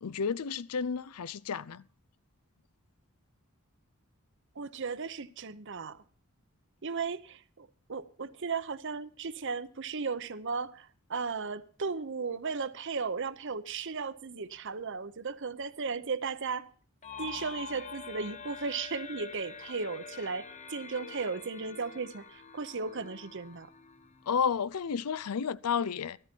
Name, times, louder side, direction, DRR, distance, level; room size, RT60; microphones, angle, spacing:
voice 1, 0.0-1.8 24.3-26.2, left 6 dB, 85° left, 0.5 m, -31 dB
voice 2, 4.6-6.0 6.8-16.7 17.2-23.7, right 4 dB, 55° right, 0.8 m, -36 dB
sound 1, 17.0-24.6, left 6 dB, 30° left, 0.8 m, -46 dB
14.5 x 13.0 x 4.5 m
head